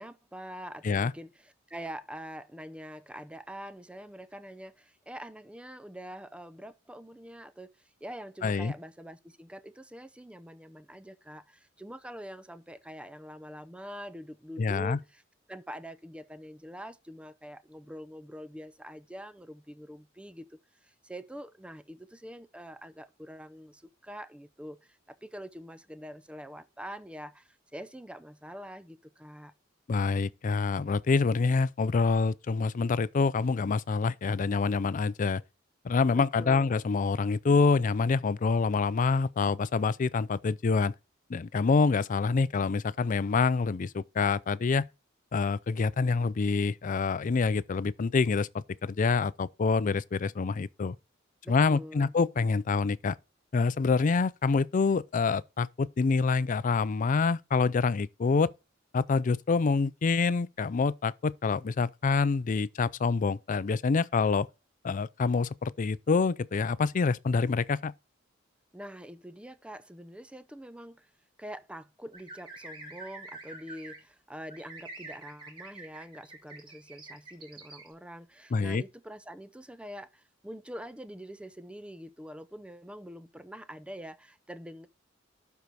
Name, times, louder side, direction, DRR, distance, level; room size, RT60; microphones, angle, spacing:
voice 1, 0.0-15.2 15.5-29.5 36.1-36.7 51.4-52.1 68.7-71.1 71.4-84.9, equal, 5° right, 0.6 m, -45 dB
voice 2, 8.4-8.7 14.6-15.0 29.9-35.4 35.8-40.9 41.3-44.9 45.3-51.0 51.5-53.2 53.5-58.5 58.9-64.5 64.8-67.9 78.5-78.8, left 4 dB, 40° left, 0.4 m, -26 dB
sound 1, 72.1-74.0 74.5-77.9, right 2 dB, 25° right, 4.0 m, -46 dB
12.0 x 4.7 x 4.1 m
head